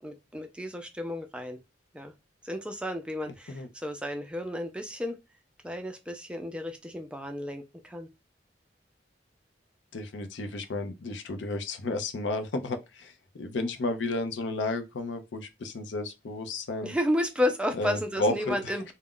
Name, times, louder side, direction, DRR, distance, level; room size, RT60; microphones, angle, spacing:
voice 1, 0.0-1.6 1.9-2.1 2.4-5.2 5.6-8.1 16.8-18.9, left 1 dB, 5° right, 0.4 m, -32 dB
voice 2, 9.9-16.9 17.7-18.9, left 2 dB, 90° left, 0.5 m, -32 dB
2.3 x 2.1 x 3.6 m
head